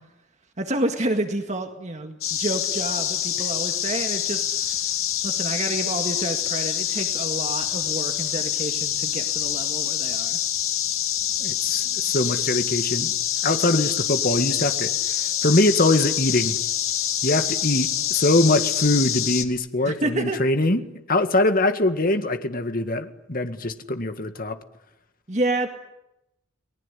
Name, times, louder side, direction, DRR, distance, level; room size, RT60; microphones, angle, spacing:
voice 1, 0.6-4.9 5.2-10.4 19.9-20.4 25.3-25.7, right 2 dB, 35° right, 5 dB, 1.9 m, -29 dB
sound 1, 2.2-19.4, left 10 dB, 90° left, 2.3 m, -26 dB
voice 2, 11.4-13.1 13.4-16.6 17.2-20.8 21.1-24.6, left 2 dB, 45° left, 8 dB, 1.9 m, -23 dB
30.0 x 20.0 x 10.0 m, 0.89 s
head